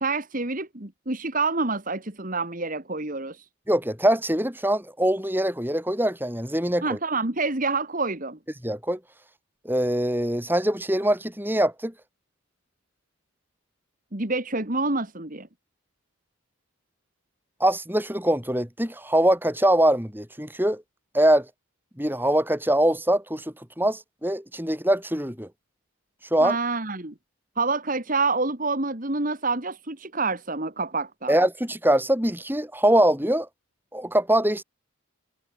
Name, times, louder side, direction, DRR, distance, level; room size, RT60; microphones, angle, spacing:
voice 1, 0.0-3.5 6.8-8.4 14.1-15.5 26.4-27.1 27.6-31.3, right 3 dB, 40° right, 2.1 m, -27 dB
voice 2, 3.7-7.0 8.6-9.0 9.7-11.9 17.6-20.8 21.1-21.5 22.0-23.4 23.8-25.5 26.3-26.6 31.3-33.5 33.9-34.6, right 1 dB, 10° right, 7.0 m, -23 dB
head